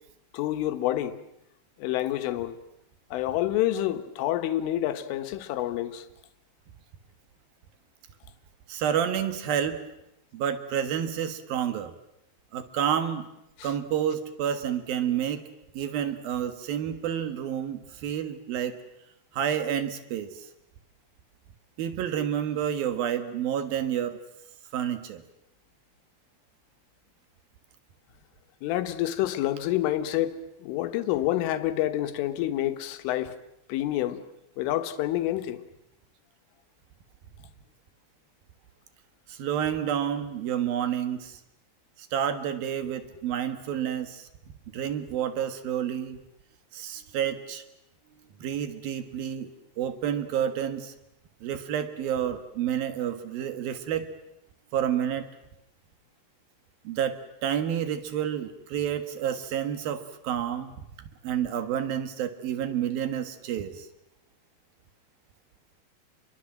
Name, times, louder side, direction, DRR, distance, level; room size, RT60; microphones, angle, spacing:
voice 1, 0.3-1.2 1.8-2.6 3.1-6.1 13.6-13.7 28.6-33.4 33.7-34.2 34.6-35.6, left 13 dB, 75° left, 3.7 m, -28 dB
voice 2, 8.7-9.8 10.3-11.9 12.5-13.3 13.6-15.4 15.7-18.8 19.3-20.5 21.8-24.2 24.7-25.2 39.3-41.4 42.0-44.3 44.7-46.2 46.7-47.6 48.4-49.5 49.8-50.9 51.4-54.1 54.7-55.3 56.8-60.7 61.2-63.9, right 9 dB, 60° right, 2.6 m, -29 dB
29.5 x 22.5 x 7.6 m
omnidirectional pair, 6.0 m